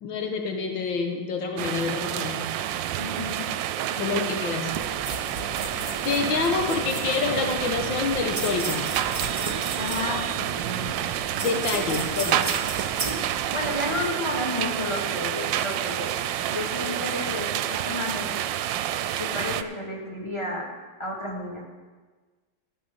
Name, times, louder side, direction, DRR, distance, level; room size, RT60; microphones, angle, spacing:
voice 1, 0.0-2.5 4.0-4.7 6.1-8.9 11.4-12.4, left 5 dB, 90° left, 3 dB, 1.9 m, -27 dB
sound 1, 1.6-19.6, right 11 dB, 80° right, 1.2 m, -29 dB
voice 2, 3.0-3.5 3.9-4.5 9.8-10.9 11.9-12.5 13.5-16.1 16.5-18.3 19.2-20.7 21.0-21.6, left 1 dB, 15° left, -3 dB, 2.4 m, -32 dB
sound 2, 4.7-14.1, right 2 dB, 25° right, 1.5 m, -35 dB
15.0 x 5.9 x 6.7 m, 1.3 s
omnidirectional pair, 2.1 m